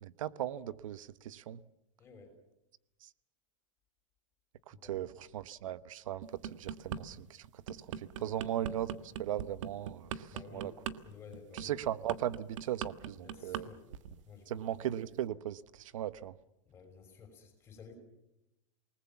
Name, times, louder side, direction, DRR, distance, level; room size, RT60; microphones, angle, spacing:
voice 1, 0.0-1.6 3.0-3.1 4.7-8.9 9.2-10.7 11.5-13.7 14.5-16.3, right 11 dB, 90° right, 16 dB, 1.0 m, -38 dB
voice 2, 2.0-2.3 4.7-5.1 8.2-8.5 10.3-10.7 11.0-11.7 13.2-13.8 14.3-14.9 16.6-17.9, left 6 dB, 15° left, 4 dB, 5.8 m, -53 dB
sound 1, 6.2-7.0 7.4-13.6 13.9-14.2, right 9 dB, 70° right, 1.4 m, -39 dB
28.5 x 19.5 x 7.3 m, 0.88 s
supercardioid pair, 175°, 17 cm